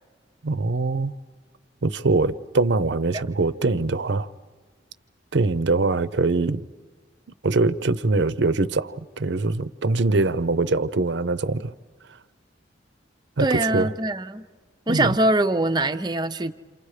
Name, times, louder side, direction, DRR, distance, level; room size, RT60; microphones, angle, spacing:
voice 1, 0.4-1.1 1.8-4.3 5.3-6.7 7.4-11.7 13.4-13.9 14.9-15.2, right 3 dB, 65° right, 0.7 m, -23 dB
voice 2, 13.4-14.4 14.9-16.5, right 2 dB, 25° right, 0.7 m, -23 dB
29.0 x 28.0 x 4.9 m
head